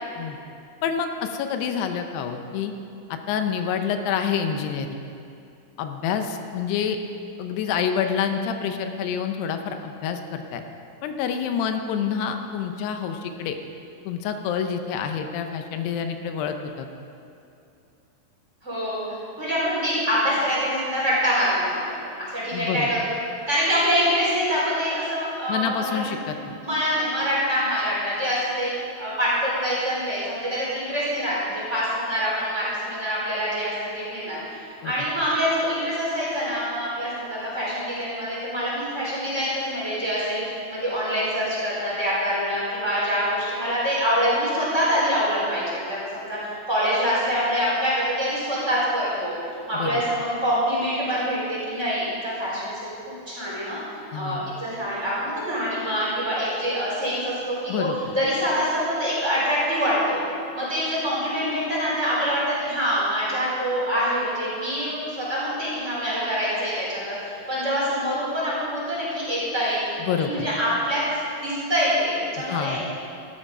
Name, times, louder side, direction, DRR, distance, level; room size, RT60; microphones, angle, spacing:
voice 1, 0.8-2.7 3.1-5.0 5.8-7.0 7.4-10.6 11.0-13.6 14.1-16.9 22.5-22.9 25.5-26.6 34.8-34.9 49.7-50.0 54.1-54.5 57.7-58.1 70.0-70.5 72.4-72.8, left 7 dB, 85° left, 6 dB, 2.8 m, -27 dB
voice 2, 18.6-19.0 19.4-23.2 23.5-26.1 26.6-28.7 29.0-49.3 49.7-53.8 54.2-57.9 58.1-60.2 60.5-71.0 71.4-72.9, equal, 15° right, -8 dB, 4.2 m, -25 dB
14.0 x 12.5 x 5.4 m, 2.6 s
omnidirectional pair, 4.7 m